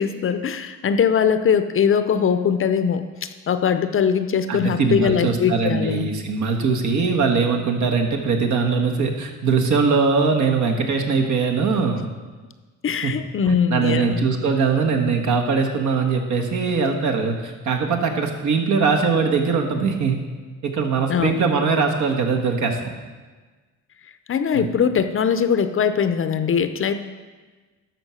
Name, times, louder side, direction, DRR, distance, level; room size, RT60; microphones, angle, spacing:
voice 1, 0.0-6.1 12.8-14.2 21.1-21.3 24.3-26.9, left 7 dB, 40° left, 10 dB, 0.6 m, -21 dB
voice 2, 4.5-12.0 13.0-13.1 13.5-20.2 20.6-22.9 24.5-24.7, right 5 dB, 65° right, 3 dB, 1.5 m, -21 dB
12.5 x 4.6 x 6.3 m, 1.3 s
cardioid pair, 105°, 32 cm